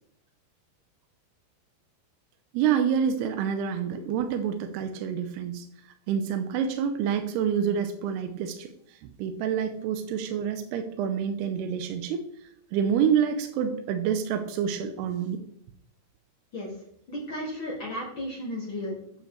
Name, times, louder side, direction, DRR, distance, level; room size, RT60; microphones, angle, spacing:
voice 1, 2.5-5.7 6.1-8.7 9.2-12.2 12.7-15.4, right 8 dB, 80° right, 6 dB, 2.6 m, -27 dB
voice 2, 17.1-19.2, left 1 dB, 70° left, -4 dB, 1.2 m, -34 dB
9.1 x 7.1 x 3.1 m, 0.72 s
omnidirectional pair, 4.8 m